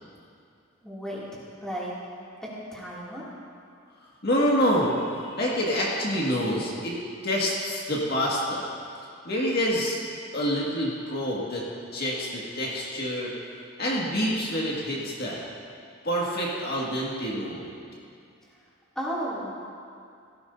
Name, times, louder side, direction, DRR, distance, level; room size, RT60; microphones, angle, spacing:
voice 1, 0.8-1.9 2.4-3.2 18.9-19.5, equal, 5° left, -8 dB, 2.6 m, -34 dB
voice 2, 4.2-6.9 7.2-8.6 9.3-10.0 10.3-11.6 11.9-13.3 13.8-15.4 16.0-17.7, equal, 50° left, -4 dB, 1.9 m, -27 dB
17.5 x 15.5 x 2.7 m, 2.4 s
head